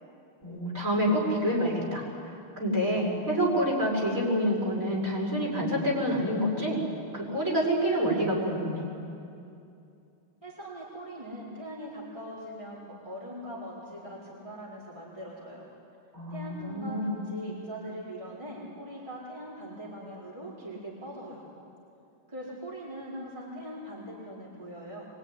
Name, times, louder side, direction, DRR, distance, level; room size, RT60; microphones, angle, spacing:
voice 1, 0.4-2.0 2.6-6.8 7.1-8.9 16.1-17.4, equal, 35° right, -4 dB, 6.5 m, -27 dB
voice 2, 10.4-15.6 16.3-21.4 22.3-25.1, equal, 15° right, -7 dB, 4.8 m, -41 dB
24.0 x 23.0 x 9.9 m, 2.6 s
omnidirectional pair, 2.4 m